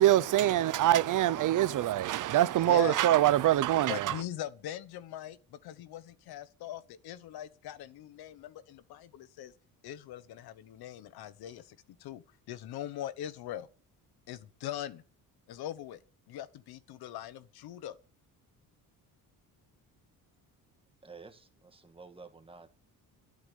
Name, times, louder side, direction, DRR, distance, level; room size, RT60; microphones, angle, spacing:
voice 1, 0.0-4.2, right 13 dB, 55° right, 0.7 m, -24 dB
voice 2, 2.6-3.0 3.9-9.5 9.8-13.7 14.3-15.0 15.5-16.0 16.3-17.9, left 12 dB, 90° left, 1.2 m, -41 dB
voice 3, 21.0-22.7, right 4 dB, 15° right, 1.8 m, -51 dB
12.0 x 9.0 x 9.4 m
cardioid pair, 160°, 36 cm